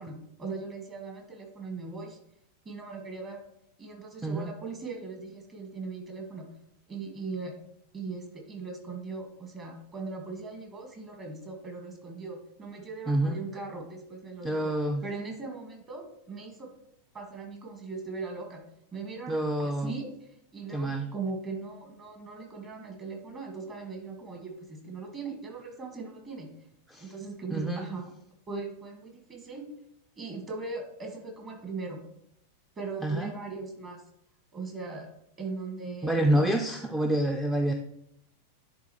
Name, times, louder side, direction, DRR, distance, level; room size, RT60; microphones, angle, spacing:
voice 1, 0.0-2.2 2.7-3.4 3.8-6.5 6.9-7.5 7.9-14.7 15.0-16.7 17.1-18.6 18.9-20.1 20.5-26.5 27.0-28.1 28.5-29.7 30.2-32.0 32.8-34.0 34.5-35.1 35.4-36.6, right 4 dB, 25° right, 2 dB, 1.7 m, -39 dB
voice 2, 4.2-4.5 13.1-13.4 14.4-15.0 19.3-19.9 20.7-21.1 26.9-27.1 27.5-27.9 33.0-33.3 36.0-37.7, right 1 dB, 5° right, 4 dB, 0.5 m, -27 dB
11.0 x 3.8 x 3.1 m, 0.74 s
figure-of-eight pair, 90°, 0 cm